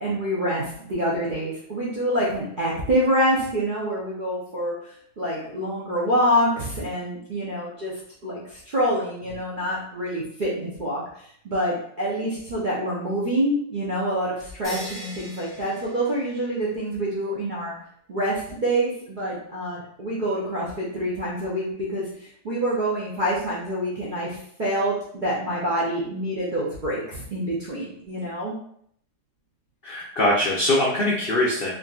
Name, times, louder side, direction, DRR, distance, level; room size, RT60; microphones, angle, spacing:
voice 1, 0.0-4.7 5.2-7.9 8.2-17.7 18.1-28.5, equal, 65° right, -7 dB, 0.4 m, -26 dB
sound 1, 14.6-16.8, equal, 35° right, 1.3 m, -40 dB
voice 2, 29.8-31.7, left 1 dB, 75° left, -4 dB, 0.5 m, -22 dB
3.6 x 2.6 x 2.3 m, 0.66 s
omnidirectional pair, 1.8 m